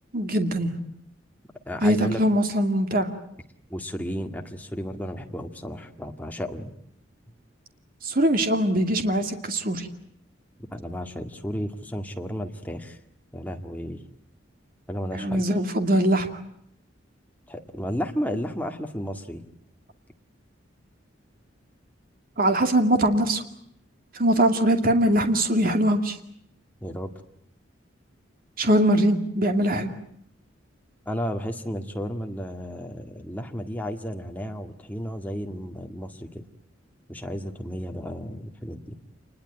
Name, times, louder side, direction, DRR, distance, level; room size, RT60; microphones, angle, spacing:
voice 1, 0.1-0.7 1.8-3.1 8.0-9.9 15.1-16.3 22.4-23.4 24.1-26.2 28.6-29.9, right 1 dB, 45° right, 6 dB, 2.4 m, -22 dB
voice 2, 1.7-2.2 3.7-6.7 10.6-13.0 13.3-14.0 14.9-15.5 17.5-19.5 26.8-27.1 31.0-36.4 37.1-39.0, equal, 10° left, 4 dB, 1.9 m, -33 dB
28.0 x 21.0 x 8.9 m, 0.71 s
head